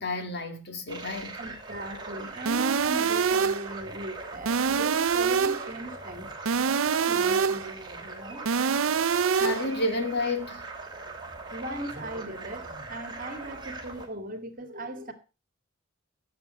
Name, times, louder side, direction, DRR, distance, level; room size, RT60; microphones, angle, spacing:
voice 1, 0.0-1.4 9.3-10.6, left 2 dB, 55° left, 2.5 m, -30 dB
sound 1, 0.9-14.1, right 3 dB, 20° right, 3.1 m, -41 dB
voice 2, 1.4-6.3 6.6-8.5 11.0-15.1, right 1 dB, 45° right, 2.2 m, -39 dB
sound 2, 2.5-3.7 4.5-5.7 6.5-7.7 8.5-9.7, right 6 dB, 90° right, 0.6 m, -25 dB
15.0 x 7.4 x 6.5 m
head